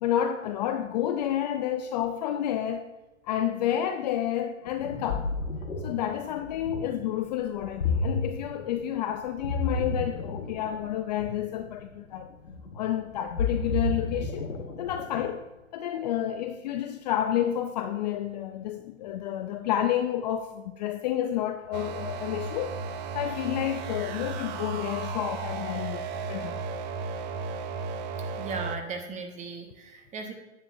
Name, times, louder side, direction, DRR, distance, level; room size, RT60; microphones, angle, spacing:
voice 1, 0.0-2.9 3.3-5.3 5.8-12.3 12.7-14.5 14.8-15.4 15.7-22.8 23.1-26.6, left 11 dB, 35° left, 0.5 m, -30 dB
Ocean, 4.7-15.4, left 3 dB, 90° left, 1.4 m, -32 dB
sound 1, 21.7-28.8, right 4 dB, 35° right, 0.6 m, -34 dB
voice 2, 28.4-30.3, right 4 dB, 20° right, 1.3 m, -37 dB
10.0 x 8.8 x 2.6 m
hypercardioid pair, 115°, 39 cm